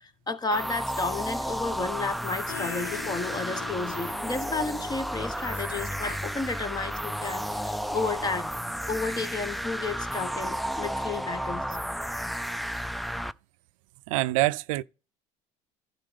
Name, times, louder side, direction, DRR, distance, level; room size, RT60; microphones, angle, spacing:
voice 1, 0.0-8.5 8.9-11.8, left 3 dB, 25° left, 1.2 m, -32 dB
sound 1, 0.5-13.3, equal, ahead, 0.3 m, -32 dB
sound 2, 2.5-9.1, left 11 dB, 80° left, 0.7 m, -45 dB
voice 2, 14.1-14.8, right 19 dB, 85° right, 0.4 m, -25 dB
12.0 x 4.2 x 5.1 m
supercardioid pair, 85°, 17 cm